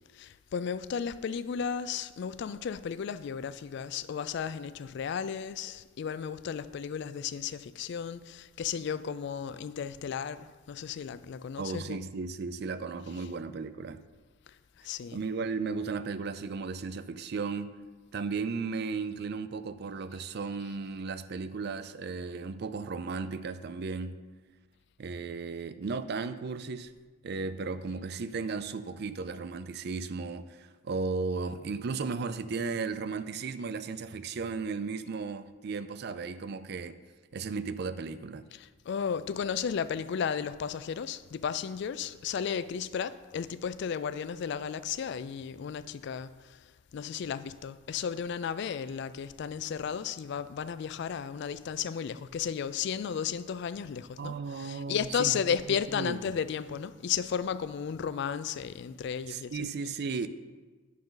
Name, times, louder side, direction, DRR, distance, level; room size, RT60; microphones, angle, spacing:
voice 1, 0.1-12.0 13.1-13.3 14.8-15.2 38.5-46.6 46.9-59.9, left 7 dB, 55° left, 0.3 m, -34 dB
voice 2, 11.6-14.0 15.1-17.7 18.1-24.1 25.0-26.9 27.2-37.0 37.3-38.4 54.2-55.3 55.7-56.2 59.3-60.3, right 4 dB, 50° right, 0.4 m, -35 dB
9.4 x 6.5 x 3.9 m
head